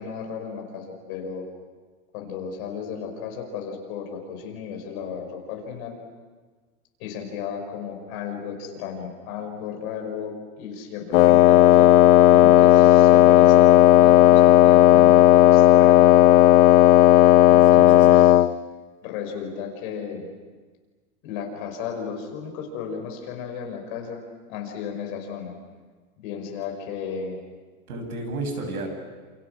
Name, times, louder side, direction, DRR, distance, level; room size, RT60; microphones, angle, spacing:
voice 1, 0.0-1.4 2.1-6.0 7.0-12.0 12.4-16.1 17.5-18.3 19.0-20.3 21.2-24.2 24.5-25.6 26.2-27.4, left 7 dB, 35° left, 2 dB, 4.9 m, -34 dB
Wind instrument woodwind instrument, 11.1-18.5, left 13 dB, 70° left, 0.8 m, -13 dB
voice 2, 12.3-12.7 14.9-15.3 17.6-18.2 27.9-28.9, right 2 dB, 80° right, 5 dB, 7.6 m, -33 dB
29.0 x 28.5 x 6.3 m, 1.4 s
supercardioid pair, 175°, 43 cm